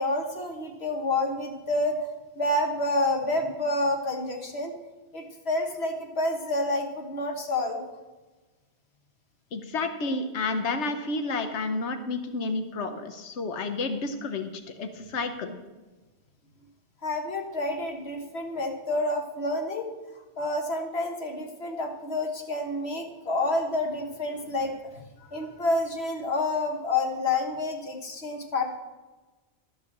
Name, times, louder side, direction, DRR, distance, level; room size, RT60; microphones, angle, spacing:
voice 1, 0.0-2.0 2.3-4.7 5.1-7.8 17.0-19.9 20.4-24.7 25.3-28.8, left 2 dB, 65° left, 3 dB, 1.8 m, -28 dB
voice 2, 9.5-14.5 14.8-15.6, left 3 dB, 90° left, 8 dB, 1.2 m, -30 dB
12.5 x 5.4 x 7.2 m, 1.2 s
omnidirectional pair, 1.1 m